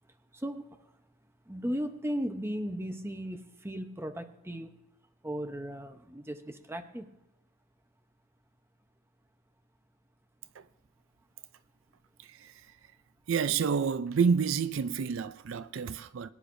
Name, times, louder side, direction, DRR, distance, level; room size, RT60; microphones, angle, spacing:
voice 1, 0.3-0.9 1.5-4.7 5.2-7.1, equal, 10° right, 0.8 m, -36 dB
voice 2, 13.3-16.3, right 6 dB, 70° right, 0.4 m, -29 dB
22.0 x 10.0 x 2.6 m
head